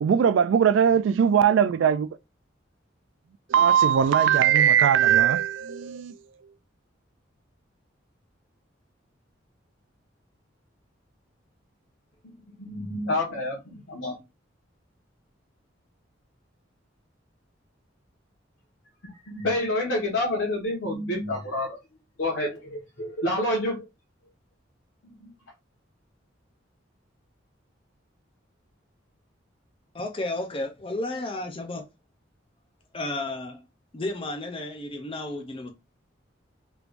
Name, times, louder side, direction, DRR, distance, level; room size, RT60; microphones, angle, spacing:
voice 1, 0.0-2.1 3.5-6.1, right 8 dB, 75° right, 0.3 m, -20 dB
voice 2, 12.7-14.1 19.0-21.8 22.2-23.8 25.2-25.3, left 1 dB, 85° left, 1.2 m, -28 dB
voice 3, 29.9-31.9 32.9-33.6 33.9-35.7, left 2 dB, 30° left, 0.5 m, -32 dB
3.4 x 3.0 x 2.5 m
head